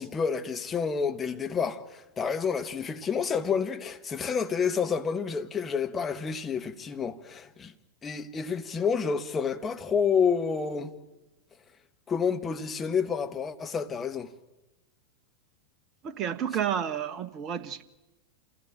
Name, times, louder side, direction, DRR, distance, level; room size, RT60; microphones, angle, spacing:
voice 1, 0.0-7.7 8.0-10.9 12.1-14.3, left 6 dB, 20° left, 1.5 m, -29 dB
voice 2, 16.0-17.8, right 9 dB, 35° right, 1.2 m, -31 dB
27.0 x 16.0 x 8.9 m
figure-of-eight pair, 90°, 0 cm